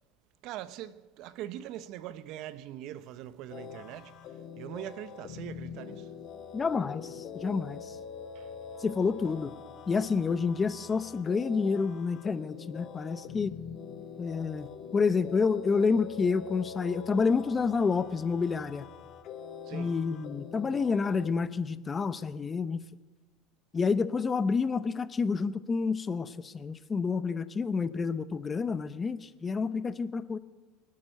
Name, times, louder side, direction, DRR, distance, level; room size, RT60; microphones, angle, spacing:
voice 1, 0.4-4.1 4.6-6.1 8.3-8.5 19.7-20.0, right 12 dB, 60° right, 0.8 m, -42 dB
sound 1, 3.5-21.3, left 6 dB, 50° left, 2.1 m, -44 dB
voice 2, 6.5-8.0 8.8-9.5 9.9-13.5 14.2-18.9 19.7-22.8 23.7-30.4, left 5 dB, 25° left, 0.8 m, -29 dB
25.0 x 8.7 x 6.5 m
supercardioid pair, 115°, 0 cm